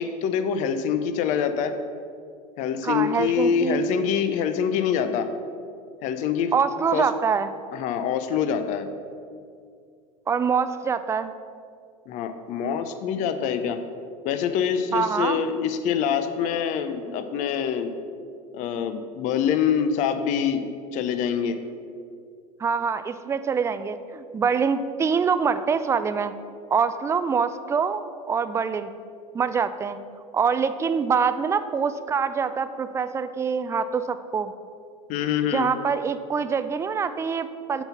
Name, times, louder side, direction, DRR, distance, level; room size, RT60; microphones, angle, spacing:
voice 1, 0.0-1.7 2.6-5.3 6.0-6.5 6.9-7.1 7.7-8.9 12.1-13.8 14.2-17.9 18.5-20.6 20.9-21.6 35.1-35.7, left 7 dB, 45° left, 10 dB, 0.5 m, -25 dB
voice 2, 2.8-3.8 6.5-7.5 10.3-11.3 14.9-15.4 22.6-26.3 26.7-28.9 29.3-30.0 30.3-34.5 35.5-37.8, right 6 dB, 15° right, 11 dB, 0.3 m, -25 dB
7.9 x 4.0 x 5.7 m, 2.3 s
figure-of-eight pair, 80°, 18 cm